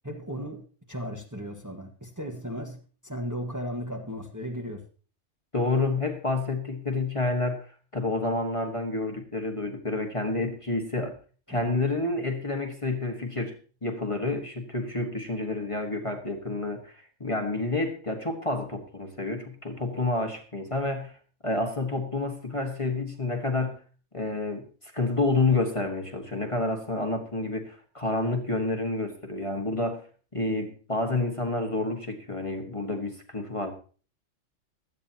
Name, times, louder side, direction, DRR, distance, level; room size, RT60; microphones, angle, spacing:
voice 1, 0.0-4.8 11.6-11.7, equal, 15° right, 2 dB, 1.4 m, -36 dB
voice 2, 5.5-7.7 7.9-11.2 11.5-13.6 13.8-21.2 21.4-23.8 24.1-30.1 30.3-33.7, left 2 dB, 25° left, 3 dB, 1.5 m, -29 dB
16.5 x 12.5 x 2.8 m, 0.38 s
omnidirectional pair, 1.3 m